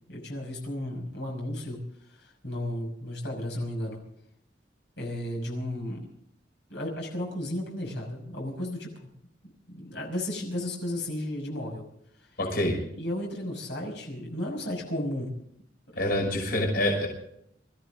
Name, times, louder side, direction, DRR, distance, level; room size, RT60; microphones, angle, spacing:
voice 1, 0.1-1.8 2.2-4.0 5.0-6.1 6.7-9.1 9.7-11.8 12.2-12.3 12.7-15.3, left 1 dB, 75° left, 0 dB, 5.9 m, -34 dB
voice 2, 12.4-12.7 16.0-17.1, left 1 dB, 60° left, 1 dB, 5.9 m, -26 dB
25.5 x 15.0 x 3.8 m, 0.72 s
head